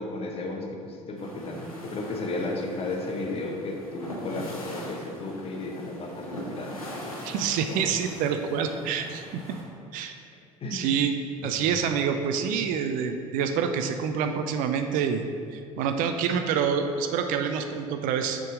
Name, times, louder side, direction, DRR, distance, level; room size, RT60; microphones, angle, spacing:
voice 1, 0.0-6.8 7.7-7.9 10.6-11.0 11.4-11.6, left 2 dB, 35° left, 1 dB, 1.0 m, -34 dB
sound 1, 1.2-9.6, left 1 dB, 85° left, 0.9 m, -41 dB
voice 2, 7.2-9.4 9.9-10.1 10.7-15.2 15.5-18.4, right 7 dB, 50° right, 6 dB, 0.4 m, -27 dB
6.5 x 3.7 x 4.9 m, 2.4 s
figure-of-eight pair, 65°, 18 cm